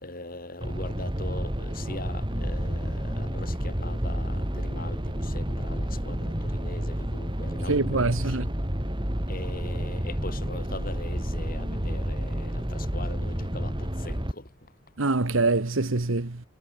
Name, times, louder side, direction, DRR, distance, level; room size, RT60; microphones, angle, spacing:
voice 1, 0.0-8.4 9.3-14.5, left 2 dB, 45° left, 4.1 m, -41 dB
sound 1, 0.6-14.3, equal, 25° right, 3.0 m, -30 dB
voice 2, 7.7-8.5 15.0-16.4, right 3 dB, 85° right, 1.4 m, -24 dB
head